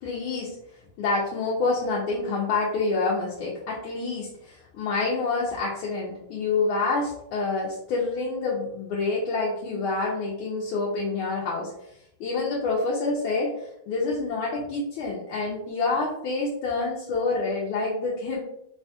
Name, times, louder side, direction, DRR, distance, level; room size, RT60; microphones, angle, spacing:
voice 1, 0.0-0.6 1.0-11.9 12.2-18.4, left 3 dB, 85° left, -4 dB, 1.5 m, -27 dB
4.0 x 2.2 x 2.7 m, 0.77 s
omnidirectional pair, 2.2 m